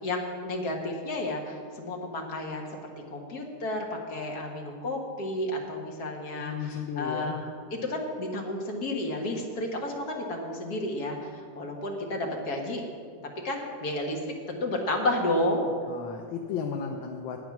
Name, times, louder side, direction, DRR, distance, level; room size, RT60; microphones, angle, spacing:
voice 1, 0.0-2.7 3.1-12.9 13.4-14.2 14.5-15.7, left 1 dB, 55° left, 1 dB, 1.9 m, -31 dB
voice 2, 6.4-7.4 15.9-17.4, left 7 dB, 85° left, 2 dB, 1.6 m, -34 dB
10.5 x 9.0 x 5.9 m, 2.1 s
omnidirectional pair, 2.1 m